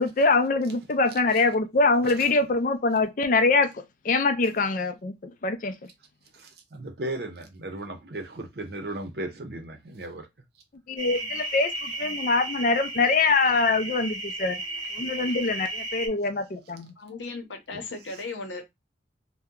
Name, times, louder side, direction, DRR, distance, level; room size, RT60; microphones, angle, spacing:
voice 1, 0.0-5.9 10.9-14.6 14.9-16.9, left 3 dB, 45° left, 0.4 m, -24 dB
voice 2, 6.3-10.3 17.7-17.8, right 1 dB, 55° right, 0.7 m, -36 dB
sound 1, 11.0-16.1, right 2 dB, 25° right, 0.9 m, -34 dB
voice 3, 17.0-18.6, left 3 dB, 80° left, 0.8 m, -36 dB
2.8 x 2.1 x 3.6 m
head